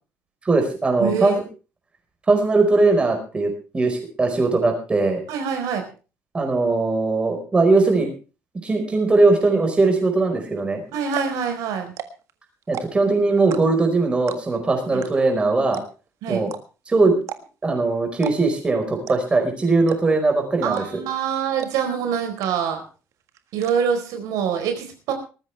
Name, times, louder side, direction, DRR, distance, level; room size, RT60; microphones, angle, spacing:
voice 1, 0.4-1.4 2.3-5.2 6.3-8.1 8.6-10.8 12.7-15.8 16.3-16.5 16.9-17.2 17.6-20.8, right 3 dB, 20° right, 4 dB, 4.8 m, -20 dB
voice 2, 1.0-1.4 5.3-5.8 10.9-11.9 14.9-15.0 16.2-16.5 20.6-22.8 23.5-25.1, right 7 dB, 90° right, 5 dB, 4.3 m, -25 dB
sound 1, 10.6-10.7 11.0-11.4 11.9-12.3 12.6-13.1 13.5-13.9 14.3-14.6 15.0-15.1 15.4-15.5 15.7-16.1 16.5-16.6 17.2-17.7 18.1-18.4 18.6-18.7 19.1-19.4 19.9-20.3 20.7-21.1 21.6-21.7 22.0-22.1 22.4-22.8 23.1-23.7, right 10 dB, 60° right, 1.6 m, -34 dB
19.5 x 14.5 x 3.4 m, 0.34 s
cardioid pair, 155°, 6 cm